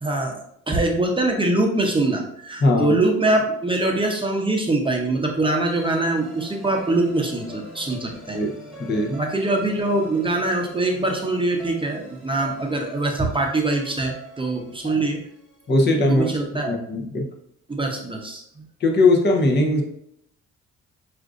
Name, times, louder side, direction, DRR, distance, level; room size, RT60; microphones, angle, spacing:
voice 1, 0.0-0.4 0.7-8.4 9.1-15.2 16.0-16.7 17.7-18.7, right 2 dB, 15° right, 1 dB, 0.7 m, -23 dB
voice 2, 2.6-3.0 8.3-8.5 8.8-9.1 14.8-15.0 15.7-16.3 16.6-17.2 18.8-19.8, left 2 dB, 35° left, 1 dB, 0.8 m, -19 dB
sound 1, 5.4-15.7, equal, ahead, 1.4 m, -42 dB
6.1 x 2.5 x 2.5 m, 0.72 s
cardioid pair, 90°, 30 cm